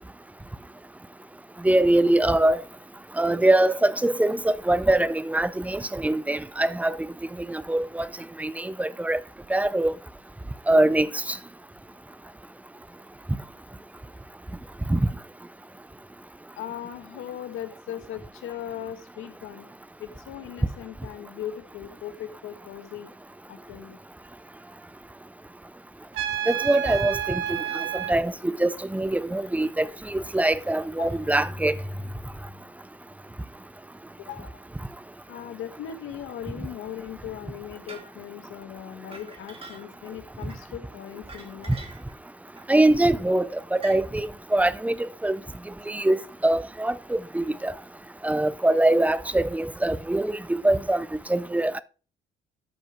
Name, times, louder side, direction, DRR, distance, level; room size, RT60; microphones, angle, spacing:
voice 1, 1.6-2.6 3.2-7.0 7.5-8.1 8.4-9.2 9.5-9.9 10.7-11.4 14.9-15.0 26.5-27.6 27.9-31.8 42.7-45.4 45.9-47.7 48.2-51.8, right 1 dB, 5° right, 0.7 m, -23 dB
voice 2, 16.5-19.7 20.0-23.1 23.5-24.0 31.0-31.1 34.2-34.6 35.3-41.8, left 10 dB, 90° left, 1.7 m, -38 dB
Trumpet, 26.1-28.2, right 10 dB, 85° right, 1.5 m, -29 dB
sound 1, 37.9-38.1 38.9-40.1 40.4-40.6 41.2-42.1 42.6-42.8 43.8-44.0, right 3 dB, 30° right, 2.6 m, -44 dB
13.0 x 5.2 x 4.5 m
cardioid pair, 90°, 20 cm